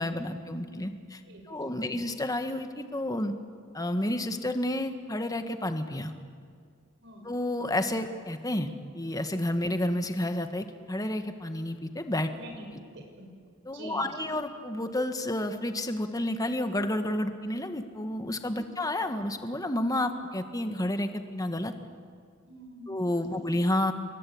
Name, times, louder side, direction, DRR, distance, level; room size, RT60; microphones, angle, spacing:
voice 1, 0.0-1.2 1.5-3.3 3.7-6.1 7.2-12.3 13.6-21.7 22.9-23.9, left 1 dB, 20° left, 7 dB, 1.6 m, -30 dB
voice 2, 1.2-2.1 7.0-7.3 12.3-12.7 12.9-13.3 13.7-14.1 18.6-18.8 22.5-23.0, right 1 dB, 60° right, 2 dB, 6.2 m, -47 dB
28.5 x 23.0 x 8.7 m, 2.1 s
head